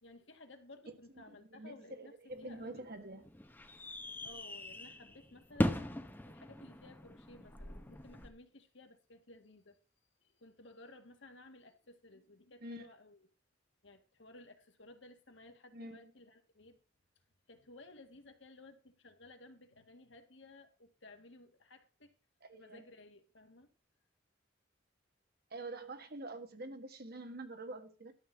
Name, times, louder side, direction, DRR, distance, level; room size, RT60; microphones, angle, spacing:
voice 1, 0.0-2.1 2.4-2.9 4.2-5.9 6.3-9.8 10.2-13.3 13.8-16.8 17.5-22.1 22.5-23.7, left 2 dB, 70° left, 1.9 m, -57 dB
voice 2, 1.2-3.2 12.6-12.9 15.7-16.0 22.5-22.8 25.5-28.1, right 2 dB, 55° right, 1.6 m, -46 dB
sound 1, 2.3-8.3, left 1 dB, 10° left, 0.9 m, -40 dB
12.5 x 4.2 x 7.5 m
head